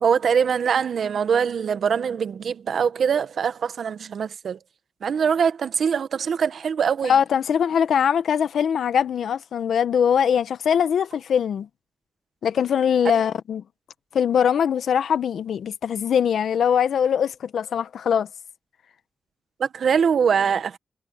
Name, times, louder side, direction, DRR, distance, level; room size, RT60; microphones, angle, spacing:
voice 1, 0.0-4.6 5.0-7.1 19.6-20.8, right 7 dB, 75° right, 1.1 m, -23 dB
voice 2, 7.0-11.7 12.4-13.6 14.1-18.3, left 8 dB, 85° left, 1.0 m, -22 dB
cardioid pair, 50°, 0 cm